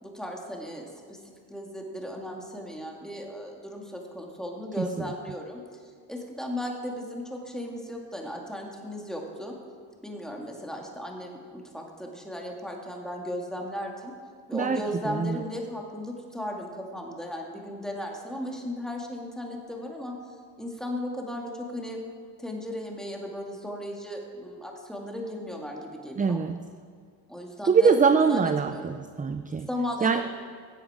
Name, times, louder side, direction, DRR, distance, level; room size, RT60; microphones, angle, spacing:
voice 1, 0.0-5.6 6.1-9.6 10.0-14.1 14.5-20.1 20.6-22.0 22.4-26.4 27.3-28.0 28.3-28.9 29.7-30.2, left 1 dB, ahead, 0 dB, 2.2 m, -36 dB
voice 2, 14.5-15.4 26.2-26.6 27.7-29.7 30.0-30.2, right 5 dB, 20° right, 9 dB, 0.4 m, -23 dB
17.0 x 7.7 x 4.9 m, 2.1 s
cardioid pair, 80°, 43 cm